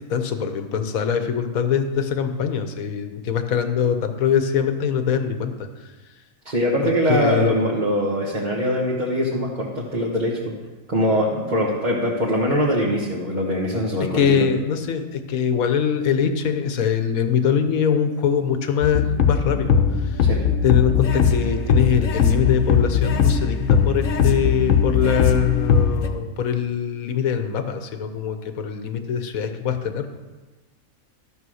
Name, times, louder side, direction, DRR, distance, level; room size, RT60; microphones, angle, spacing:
voice 1, 0.0-5.5 6.8-7.7 14.1-20.2 20.6-30.1, left 7 dB, 90° left, 8 dB, 1.3 m, -23 dB
voice 2, 6.4-10.4 10.9-14.5 20.2-20.4, equal, 35° right, -4 dB, 1.5 m, -22 dB
sound 1, 18.8-26.1, left 7 dB, 70° left, 1.2 m, -19 dB
12.5 x 5.6 x 6.4 m, 1.2 s
omnidirectional pair, 1.4 m